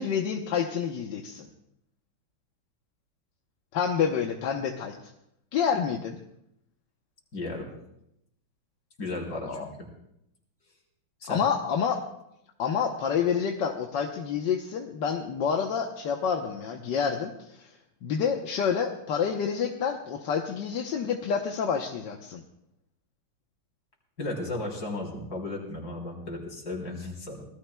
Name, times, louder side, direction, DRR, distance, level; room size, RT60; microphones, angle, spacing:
voice 1, 0.0-1.5 3.7-4.9 5.5-6.2 9.3-9.7 11.3-12.0 12.6-22.4, left 7 dB, 60° left, 2 dB, 1.5 m, -28 dB
voice 2, 7.3-7.7 9.0-9.9 11.2-11.5 24.2-27.5, left 2 dB, 45° left, -1 dB, 4.0 m, -35 dB
25.5 x 19.0 x 2.3 m, 0.80 s
omnidirectional pair, 2.3 m